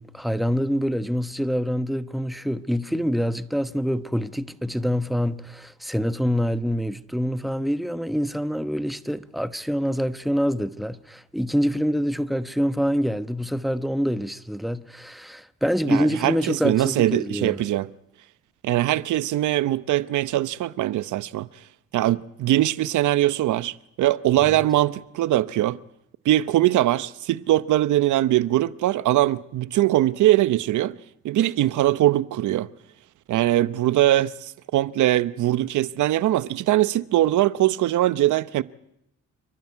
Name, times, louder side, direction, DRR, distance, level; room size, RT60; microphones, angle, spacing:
voice 1, 0.0-17.6 24.4-24.6, equal, ahead, 1.1 m, -26 dB
voice 2, 15.9-17.9 18.6-21.5 21.9-25.8 26.2-31.0 31.2-32.7 33.3-38.6, right 14 dB, 75° right, 0.9 m, -21 dB
29.0 x 12.0 x 9.5 m
cardioid pair, 90°, 30 cm